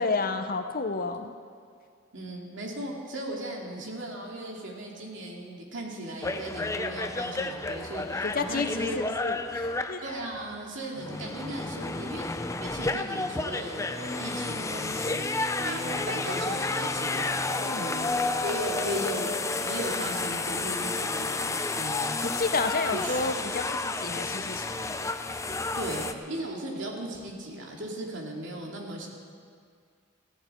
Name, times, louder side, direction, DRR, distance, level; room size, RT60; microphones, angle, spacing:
voice 1, 0.0-1.3 8.2-10.0 17.6-17.9 22.2-25.2, left 3 dB, 45° left, 8 dB, 0.8 m, -31 dB
voice 2, 2.1-9.0 10.0-18.1 18.4-22.1 22.9-23.3 25.7-29.1, right 1 dB, 70° right, -1 dB, 2.6 m, -37 dB
sound 1, 6.2-10.6 11.0-26.1, left 3 dB, 15° left, 0.6 m, -31 dB
19.0 x 15.0 x 4.5 m, 2.2 s
head